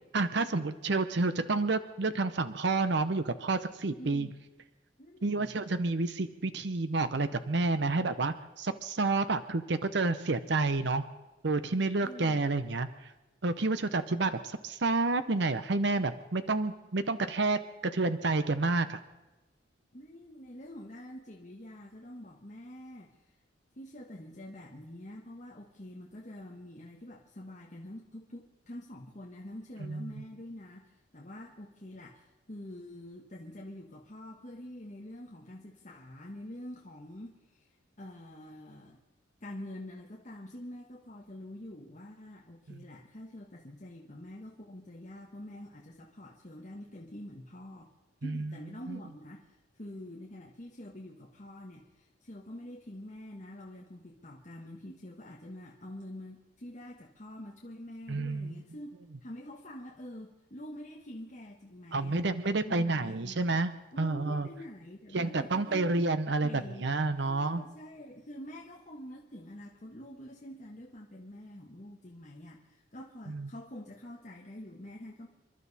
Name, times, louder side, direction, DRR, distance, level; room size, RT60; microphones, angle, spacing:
voice 1, 0.1-4.3 5.2-11.0 11.4-12.9 13.4-17.6 17.9-19.0 29.8-30.0 42.7-42.8 48.2-48.5 48.9-49.0 58.1-58.6 61.9-63.7 64.0-64.5 65.1-67.6 73.3-73.5, right 3 dB, 60° right, 11 dB, 0.7 m, -29 dB
voice 2, 4.0-4.3 5.0-5.5 12.0-12.4 19.9-23.1 23.8-37.7 38.0-39.0 39.4-47.9 48.2-58.9 59.2-62.3 62.6-63.6 63.9-65.9 66.4-66.9 67.2-75.3, left 1 dB, 40° left, -2 dB, 1.4 m, -46 dB
28.0 x 12.0 x 4.1 m, 1.1 s
head